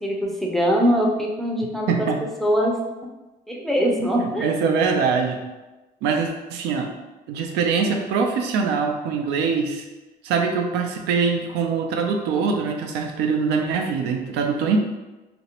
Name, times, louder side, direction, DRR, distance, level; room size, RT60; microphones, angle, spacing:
voice 1, 0.0-2.1 2.4-2.8 3.5-4.5, equal, ahead, -1 dB, 0.4 m, -22 dB
voice 2, 1.9-2.2 4.0-5.4 6.0-6.9 7.3-9.8 10.2-14.8, right 5 dB, 85° right, 3 dB, 0.4 m, -23 dB
2.5 x 2.0 x 2.8 m, 1.1 s
cardioid pair, 110°, 17 cm